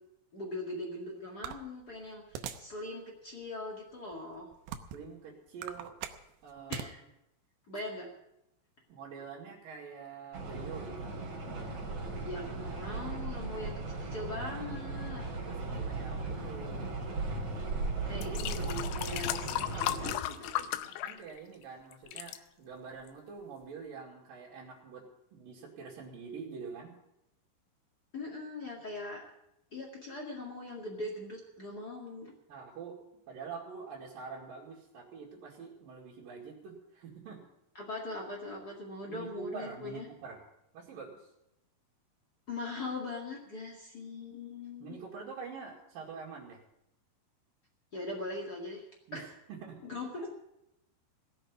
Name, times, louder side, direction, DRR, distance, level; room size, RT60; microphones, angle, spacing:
voice 1, 0.3-4.5 6.7-7.0 7.7-8.1 12.2-15.2 18.0-21.0 22.1-22.2 28.1-29.2 29.7-32.3 37.7-40.1 42.5-45.0 47.9-48.8 49.1-49.2 49.8-50.3, left 2 dB, 55° left, -2 dB, 1.0 m, -41 dB
sound 1, 1.4-2.8 3.3-3.4 4.1-5.1 5.5-6.9, right 9 dB, 75° right, 2.7 m, -41 dB
voice 2, 4.9-5.9 6.4-6.9 8.9-11.1 15.4-16.8 21.0-26.9 32.5-33.0 33.3-37.4 39.1-40.4 40.7-41.3 44.8-46.6 49.1-49.8, right 5 dB, 55° right, -6 dB, 3.7 m, -45 dB
sound 2, 10.3-20.1, right 3 dB, 35° right, 3.8 m, -37 dB
sound 3, 17.5-17.6 18.1-21.6 21.9-22.4 23.1-23.2, left 13 dB, 85° left, 3.2 m, -36 dB
17.5 x 6.7 x 9.5 m, 0.85 s
omnidirectional pair, 5.5 m